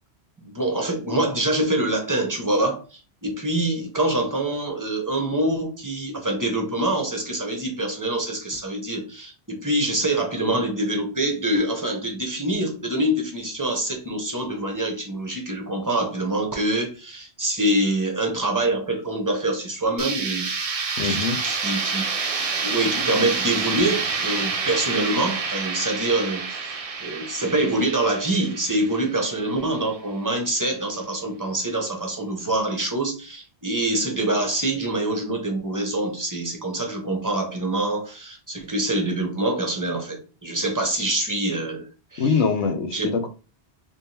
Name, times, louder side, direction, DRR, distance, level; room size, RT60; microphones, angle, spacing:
voice 1, 0.4-22.0 22.6-42.4 42.9-43.1, right 1 dB, 20° right, 0.9 m, -25 dB
sound 1, 20.0-29.7, right 4 dB, 45° right, 0.5 m, -28 dB
voice 2, 21.0-21.4 42.2-43.3, left 5 dB, 85° left, 1.1 m, -23 dB
3.6 x 3.4 x 2.8 m
omnidirectional pair, 1.1 m